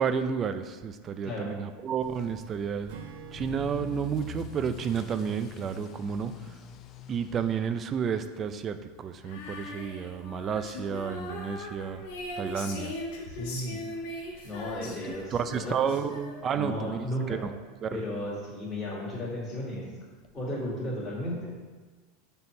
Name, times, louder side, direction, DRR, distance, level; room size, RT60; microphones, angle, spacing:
voice 1, 0.0-3.0 3.3-6.5 7.1-12.1 12.4-13.0 14.8-15.0 15.3-17.5 17.8-17.9, right 7 dB, 30° right, 10 dB, 0.4 m, -31 dB
Motor vehicle (road) / Accelerating revving vroom, 2.0-16.9 17.2-17.6 18.1-18.2 18.5-18.6 18.8-18.9 20.2-20.3, left 8 dB, 40° left, 0.4 m, -48 dB
Acoustic guitar / Strum, 2.9-6.3, right 6 dB, 80° right, 1.0 m, -50 dB
Female singing, 9.2-16.7, left 1 dB, 75° left, 1.4 m, -40 dB
voice 2, 13.3-13.8 14.4-15.7 16.5-17.4 17.9-19.9 20.3-21.5, left 1 dB, 20° left, -12 dB, 2.2 m, -34 dB
6.9 x 4.2 x 4.5 m, 1.4 s
supercardioid pair, 130°, 0 cm